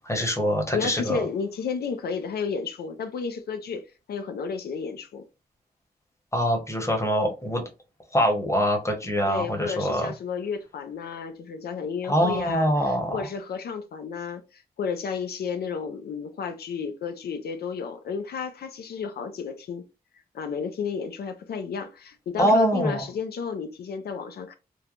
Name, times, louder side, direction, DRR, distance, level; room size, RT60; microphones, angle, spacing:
voice 1, 0.0-1.2 6.3-7.6 8.1-10.1 12.1-13.2 22.4-23.1, equal, 20° left, 0.9 m, -24 dB
voice 2, 0.7-5.2 9.3-19.8 20.3-24.5, left 5 dB, 90° left, 0.4 m, -32 dB
3.2 x 2.1 x 2.4 m
wide cardioid pair, 85°, 16 cm